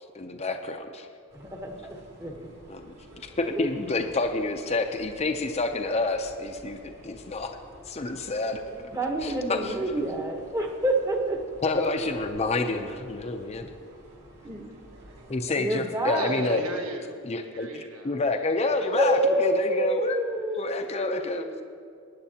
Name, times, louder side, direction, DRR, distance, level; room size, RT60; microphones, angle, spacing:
voice 1, 0.1-1.1 2.7-2.9 3.2-6.8 7.0-7.6 7.9-8.6 9.2-9.7 11.6-13.7 15.3-16.6 17.3-21.5, left 3 dB, 30° left, 4 dB, 0.5 m, -28 dB
voice 2, 1.3-2.3 3.5-3.7 8.4-11.4 11.9-12.0 14.4-14.6 15.5-16.3 18.9-21.6, right 1 dB, 15° right, 2 dB, 1.0 m, -28 dB
sound 1, 1.3-15.5, right 1 dB, 50° right, 2.0 m, -50 dB
voice 3, 14.9-15.4 16.1-19.1 20.5-20.9, right 1 dB, 75° right, 3 dB, 1.3 m, -38 dB
20.0 x 9.4 x 2.8 m, 2.3 s
head